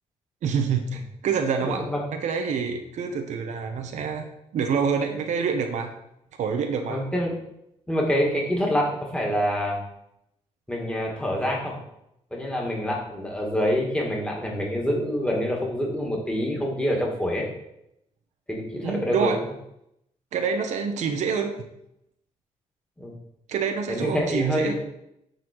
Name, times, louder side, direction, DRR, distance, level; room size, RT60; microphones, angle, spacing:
voice 1, 0.4-5.9 6.4-7.0 18.8-19.4 20.3-21.5 23.5-24.7, right 6 dB, 80° right, 5 dB, 1.0 m, -27 dB
voice 2, 1.6-2.0 6.9-7.3 7.9-9.8 10.7-11.8 12.3-17.5 18.5-19.4 23.0-23.1 23.9-24.7, equal, 10° left, -2 dB, 2.3 m, -26 dB
9.1 x 4.2 x 4.6 m, 0.80 s
cardioid pair, 105°, 12 cm